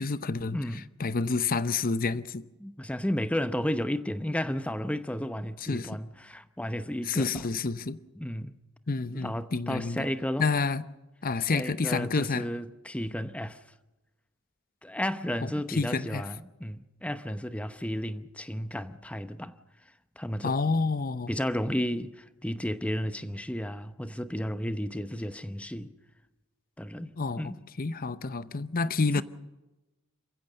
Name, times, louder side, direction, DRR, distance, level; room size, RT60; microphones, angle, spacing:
voice 1, 0.0-0.6 1.0-2.5 5.7-5.9 7.1-8.0 8.9-10.1 10.4-10.8 11.2-12.5 15.4-16.2 20.4-21.3 27.2-27.5 27.8-29.2, left 4 dB, 40° left, 0.7 m, -29 dB
voice 2, 0.5-0.9 2.6-7.5 8.2-8.5 9.1-10.5 11.5-13.6 14.8-19.6 20.2-20.6 21.3-25.9 26.8-27.6 29.2-29.3, equal, 5° left, 0.8 m, -33 dB
27.5 x 15.5 x 6.7 m
head